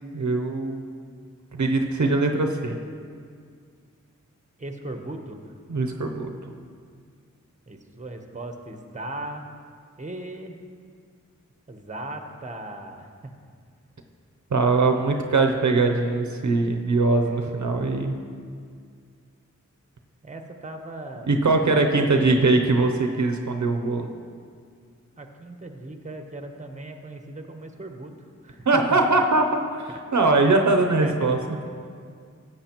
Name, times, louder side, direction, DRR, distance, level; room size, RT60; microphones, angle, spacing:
voice 1, 0.1-0.8 1.6-2.8 5.7-6.3 14.5-18.1 21.3-24.1 28.7-29.6 30.1-31.4, right 3 dB, 65° right, 3 dB, 0.7 m, -21 dB
voice 2, 4.6-5.5 7.7-9.5 10.0-10.6 11.7-13.3 17.2-17.7 20.2-22.5 25.2-28.1 28.4-29.0 29.9-30.0 31.0-31.3, right 2 dB, 25° right, 5 dB, 0.9 m, -38 dB
13.5 x 7.9 x 3.0 m, 2.1 s
wide cardioid pair, 55°, 31 cm